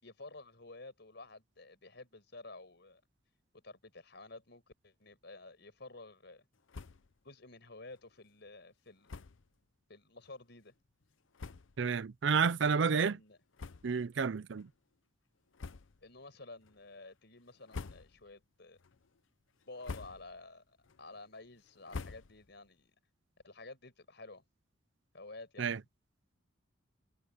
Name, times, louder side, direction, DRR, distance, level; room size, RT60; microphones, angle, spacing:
voice 1, 0.0-3.0 3.6-6.5 7.2-9.2 9.9-10.7 12.6-13.4 16.0-18.8 19.7-22.9 23.4-24.4 25.1-25.7, left 2 dB, 60° left, 5.6 m, -51 dB
sound 1, 6.7-7.2 7.5-7.6 7.9-8.0 9.0-9.5 10.2-10.3 11.0-11.1 11.3-11.9 12.4-12.6 13.5-14.2 14.5-14.7 15.5-16.1 16.6-17.0 17.5-18.4 18.8-19.2 19.6-20.5 20.8-22.7, left 4 dB, 80° left, 0.7 m, -47 dB
voice 2, 11.8-13.2 13.8-14.7 25.6-25.8, right 5 dB, 65° right, 0.5 m, -30 dB
head